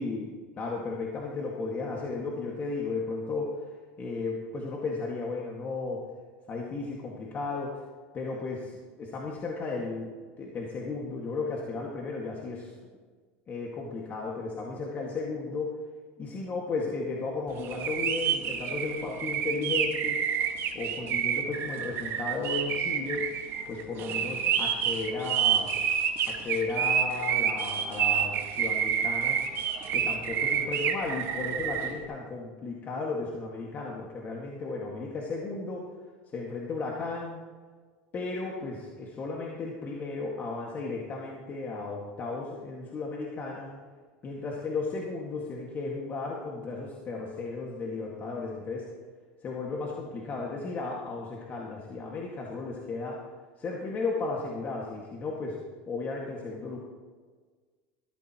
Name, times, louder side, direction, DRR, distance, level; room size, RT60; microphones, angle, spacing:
voice 1, 0.0-3.6 4.0-6.0 6.5-7.8 8.1-12.7 13.5-15.7 16.2-20.2 20.7-23.3 23.7-25.7 26.3-29.4 29.9-35.9 36.3-37.4 38.1-43.7 44.2-48.9 49.4-53.2 53.6-55.6 55.9-56.8, left 3 dB, 35° left, -2 dB, 1.9 m, -34 dB
sound 1, 17.6-31.9, right 8 dB, 45° right, 1.6 m, -28 dB
15.0 x 13.5 x 3.0 m, 1.5 s
supercardioid pair, 115°, 6 cm